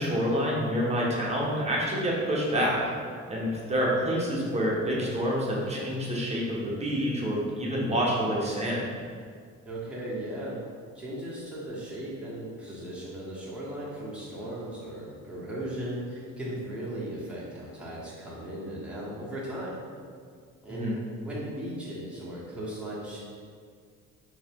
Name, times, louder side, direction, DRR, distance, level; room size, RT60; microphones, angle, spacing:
voice 1, 0.0-2.8 3.3-8.8 20.7-21.0, equal, 20° right, -5 dB, 1.0 m, -27 dB
voice 2, 9.6-10.6 10.9-19.7 20.6-23.2, right 1 dB, 5° right, -9 dB, 1.3 m, -37 dB
3.8 x 2.9 x 3.6 m, 2.1 s
cardioid pair, 90°, 30 cm